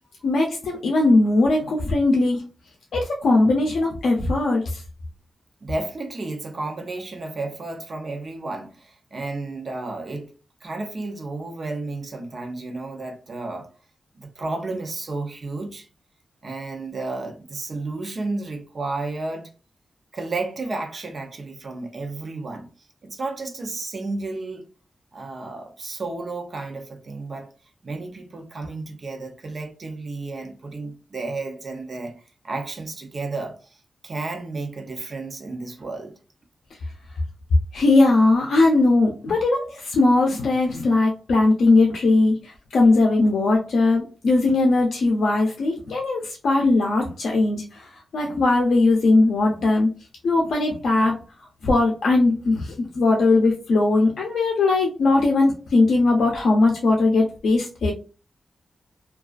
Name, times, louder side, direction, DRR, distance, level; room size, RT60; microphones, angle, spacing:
voice 1, 0.2-2.4 2.9-4.8 37.7-47.8 48.1-49.9 50.2-51.1 51.6-57.9, left 2 dB, 90° left, 0.4 m, -19 dB
voice 2, 5.6-10.3 10.6-13.7 14.1-15.9 16.4-19.5 20.1-22.7 23.0-24.7 25.1-27.5 27.8-32.2 32.4-36.2, right 3 dB, 40° right, 0.5 m, -32 dB
2.3 x 2.3 x 2.3 m
wide cardioid pair, 165°, 0 cm